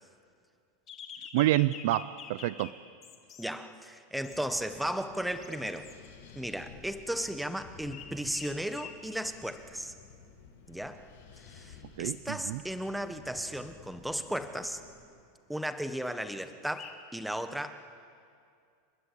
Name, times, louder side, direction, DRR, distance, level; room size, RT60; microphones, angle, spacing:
sound 1, 0.9-2.7 3.0-3.4 4.2-4.6 5.4-6.1 7.9-8.1 8.3-9.0 9.6-9.7 16.7-16.9, left 7 dB, 25° left, 2.3 m, -46 dB
voice 1, 1.3-2.7 12.0-12.6, right 16 dB, 65° right, 17 dB, 0.6 m, -28 dB
voice 2, 3.4-5.9 6.3-9.9 10.7-11.0 11.5-14.8 15.5-17.7, right 1 dB, ahead, 9 dB, 1.2 m, -35 dB
Wind, 4.3-15.0, left 6 dB, 80° left, 5.9 m, -54 dB
29.5 x 21.5 x 8.4 m, 2.3 s
supercardioid pair, 160°, 0 cm